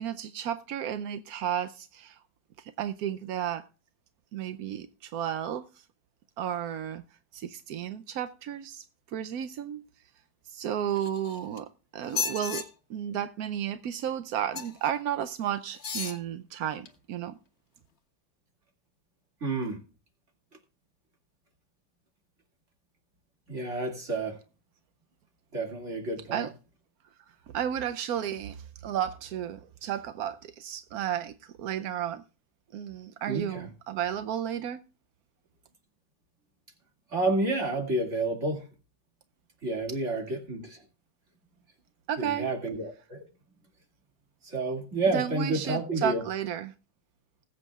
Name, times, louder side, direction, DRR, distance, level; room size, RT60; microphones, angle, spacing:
voice 1, 0.0-2.2 2.6-3.6 4.3-5.8 6.4-7.0 7.3-9.8 10.5-11.7 11.9-12.6 12.9-17.4 26.3-26.5 27.5-32.2 32.7-34.8 42.1-42.5 45.1-46.7, right 10 dB, 65° right, 0.9 m, -33 dB
sound 1, 10.9-11.6 12.0-12.6 14.5-14.9 15.7-16.2 16.9-17.0, left 6 dB, 40° left, 1.5 m, -34 dB
voice 2, 19.4-19.8 23.5-24.4 25.5-26.5 33.3-33.7 37.1-38.7 39.6-40.8 42.2-43.6 44.4-46.2, right 2 dB, 40° right, 2.5 m, -30 dB
20.5 x 8.2 x 2.3 m
omnidirectional pair, 2.1 m